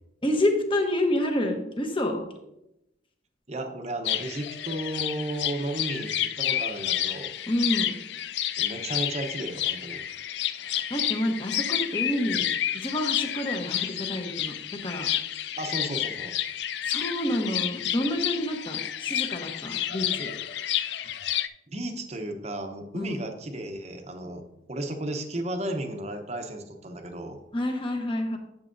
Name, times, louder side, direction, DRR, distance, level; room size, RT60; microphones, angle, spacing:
voice 1, 0.2-2.2 7.5-7.9 10.9-12.4 12.7-15.1 16.8-20.3 22.9-23.2 27.5-28.4, left 1 dB, 25° left, 4 dB, 1.0 m, -28 dB
voice 2, 3.5-7.3 8.6-10.0 15.5-16.4 21.7-27.4, right 1 dB, 35° right, 5 dB, 0.9 m, -34 dB
sound 1, 4.0-21.5, left 11 dB, 55° left, 0.4 m, -30 dB
11.0 x 7.5 x 2.6 m, 0.88 s
head